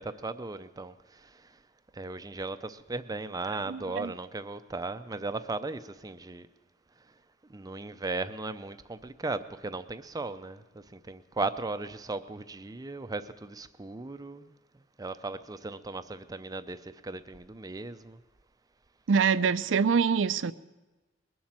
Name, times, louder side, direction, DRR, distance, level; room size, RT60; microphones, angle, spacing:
voice 1, 0.0-1.6 1.9-6.5 7.5-14.6 15.0-18.2, right 3 dB, 20° right, 0.5 m, -37 dB
voice 2, 3.7-4.1 19.1-20.5, right 6 dB, 75° right, 0.5 m, -25 dB
21.0 x 7.3 x 7.5 m
head